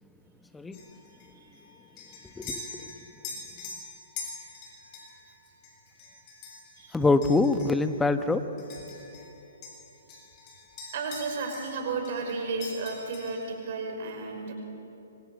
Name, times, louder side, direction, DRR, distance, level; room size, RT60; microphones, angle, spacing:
sound 1, 0.7-9.3 9.6-11.8 12.0-13.6, left 4 dB, 35° left, 7.6 m, -44 dB
voice 1, 2.4-3.0 6.9-8.4, left 3 dB, 10° left, 9 dB, 1.3 m, -25 dB
voice 2, 10.9-14.5, right 4 dB, 50° right, 3 dB, 5.6 m, -33 dB
26.5 x 25.5 x 8.3 m, 3.0 s
figure-of-eight pair, 125°, 0 cm